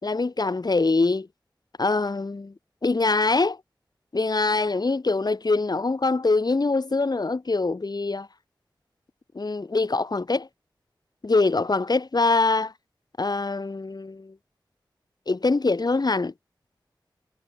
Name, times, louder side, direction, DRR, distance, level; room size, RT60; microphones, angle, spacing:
voice 1, 0.0-1.3 1.8-2.5 2.8-3.6 4.1-8.3 9.3-10.5 11.2-12.7 13.2-14.3 15.3-16.3, left 3 dB, 55° left, 5.9 m, -23 dB
wide cardioid pair, 55°, 8 cm